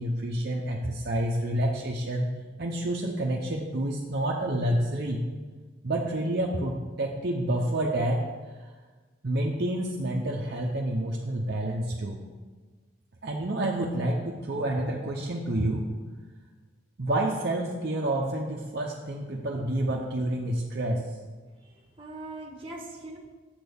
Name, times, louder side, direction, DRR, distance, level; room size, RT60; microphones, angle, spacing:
voice 1, 0.0-2.3 2.6-5.2 5.8-8.2 8.6-8.7 9.2-12.2 13.2-15.8 17.0-21.1, right 1 dB, 55° right, -1 dB, 0.7 m, -28 dB
voice 2, 21.5-23.2, right 2 dB, 30° right, 0 dB, 1.4 m, -42 dB
7.8 x 4.2 x 6.8 m, 1.3 s
head